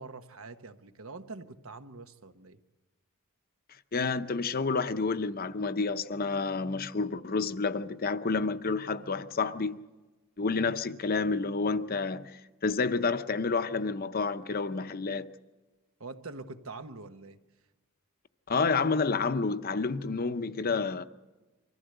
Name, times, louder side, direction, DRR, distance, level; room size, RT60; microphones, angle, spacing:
voice 1, 0.0-2.6 16.0-17.4, right 3 dB, 70° right, 1.1 m, -44 dB
voice 2, 3.9-9.8 10.4-15.3 18.5-21.0, left 4 dB, 45° left, 0.7 m, -29 dB
24.5 x 15.0 x 7.9 m
head